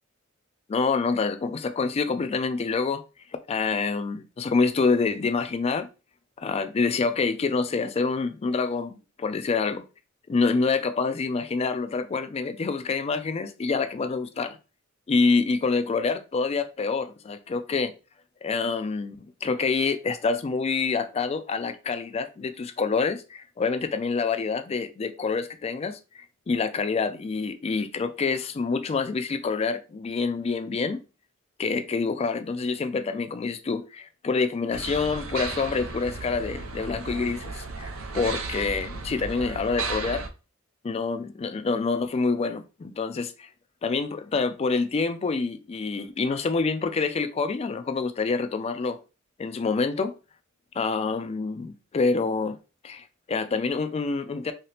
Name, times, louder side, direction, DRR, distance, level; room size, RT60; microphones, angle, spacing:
voice 1, 0.7-3.0 3.5-5.9 6.4-9.8 10.3-14.6 15.1-17.9 18.4-31.0 31.6-40.2 40.8-43.5 43.8-49.0 49.4-50.1 50.8-52.6 52.8-54.5, left 4 dB, 30° left, 0.3 m, -27 dB
sound 1, 34.7-40.3, right 4 dB, 90° right, 0.6 m, -34 dB
2.8 x 2.8 x 3.2 m
head